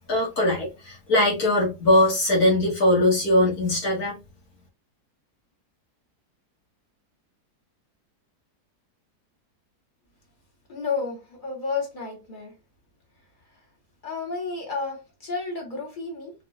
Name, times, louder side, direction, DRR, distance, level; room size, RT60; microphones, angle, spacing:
voice 1, 0.0-4.2, left 1 dB, 65° left, 2.3 m, -21 dB
voice 2, 10.7-12.5 14.0-16.3, left 4 dB, 30° left, 1.9 m, -31 dB
4.6 x 4.0 x 2.5 m
omnidirectional pair, 1.7 m